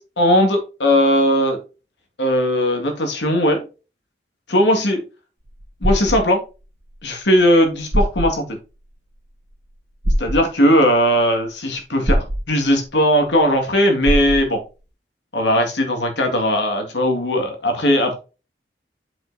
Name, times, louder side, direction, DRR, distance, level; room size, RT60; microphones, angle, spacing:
voice 1, 0.2-1.6 2.2-3.6 4.5-5.0 5.8-6.4 7.0-8.6 10.2-14.6 15.3-18.2, equal, 85° left, 3 dB, 2.0 m, -18 dB
sound 1, 5.5-6.2 7.5-7.6 7.9-8.3 10.0-10.4 12.1-12.4 14.0-14.4, equal, 65° right, 2.0 m, -20 dB
7.4 x 5.5 x 2.7 m, 0.31 s
head